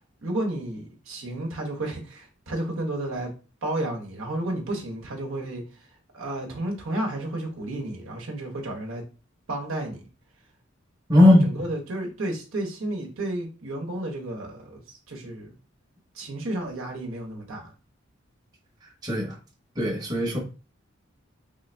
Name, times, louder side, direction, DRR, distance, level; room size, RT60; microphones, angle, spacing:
voice 1, 0.2-3.3 3.6-5.8 6.1-9.0 9.5-10.1 11.1-15.5 16.1-17.7, right 1 dB, 75° right, 1.0 m, -32 dB
voice 2, 11.1-11.4 19.0-19.4 19.8-20.4, left 1 dB, 20° right, 0.9 m, -18 dB
3.6 x 2.5 x 3.3 m
head